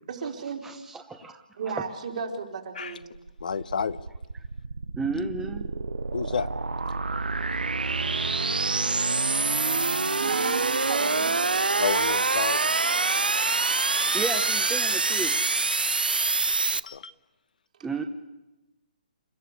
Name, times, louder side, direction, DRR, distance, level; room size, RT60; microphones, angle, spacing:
voice 1, 0.1-0.6 1.6-3.1 9.7-11.4, right 5 dB, 60° right, 0 dB, 4.1 m, -34 dB
voice 2, 0.6-1.4 1.7-1.8 5.0-5.7 14.1-15.3 17.8-18.0, right 4 dB, 10° right, 5 dB, 0.9 m, -32 dB
sound 1, 3.0-16.8, right 3 dB, 90° right, 0.7 m, -26 dB
voice 3, 3.4-4.0 6.1-6.5 11.8-12.7 16.8-17.1, left 6 dB, 65° left, 13 dB, 1.0 m, -30 dB
28.5 x 13.0 x 8.3 m, 1.0 s
figure-of-eight pair, 140°, 5 cm